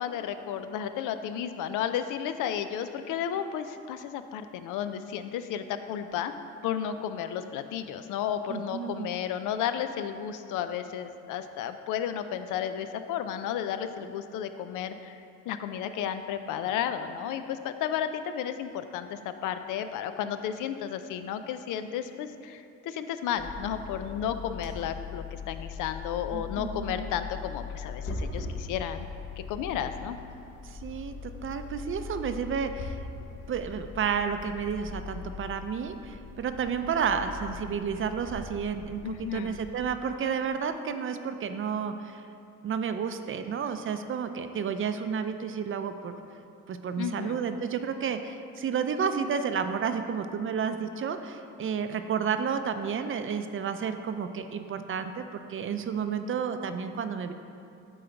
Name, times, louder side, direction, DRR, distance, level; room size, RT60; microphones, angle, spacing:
voice 1, 0.0-6.3 6.6-15.2 15.5-29.1 29.4-30.2 39.0-39.6 47.0-47.4, left 9 dB, 90° left, 9 dB, 0.5 m, -33 dB
voice 2, 8.5-9.1 26.3-27.1 30.7-33.0 33.5-42.2 42.6-46.1 46.7-55.2 55.5-57.3, right 6 dB, 45° right, 8 dB, 0.5 m, -31 dB
sound 1, 23.4-39.9, left 4 dB, 55° left, 1.2 m, -40 dB
9.0 x 3.9 x 4.4 m, 2.5 s
cardioid pair, 90°, 30 cm